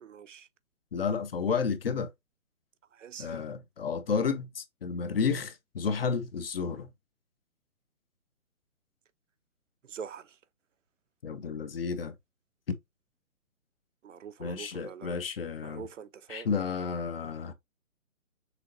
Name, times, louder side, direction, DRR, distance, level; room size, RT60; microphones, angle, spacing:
voice 1, 0.0-0.5 2.9-3.4 9.8-10.4 14.0-15.2 15.6-16.5, right 7 dB, 60° right, 0.6 m, -44 dB
voice 2, 0.9-2.1 3.2-6.9 11.2-12.1 12.7-12.8 14.4-15.8 16.3-17.5, left 5 dB, 40° left, 0.6 m, -31 dB
6.2 x 2.9 x 2.6 m
figure-of-eight pair, 145°, 43 cm